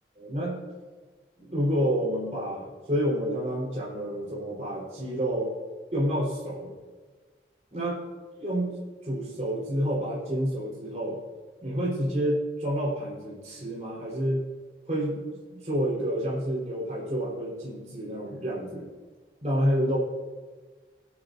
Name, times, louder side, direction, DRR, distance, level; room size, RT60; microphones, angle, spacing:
voice 1, 0.2-0.7 1.4-5.5 5.9-6.7 7.7-8.1 8.4-11.2 11.6-14.4 14.9-15.2 15.5-18.8 19.4-20.0, equal, 40° right, -7 dB, 4.4 m, -29 dB
23.0 x 9.8 x 2.7 m, 1.4 s
head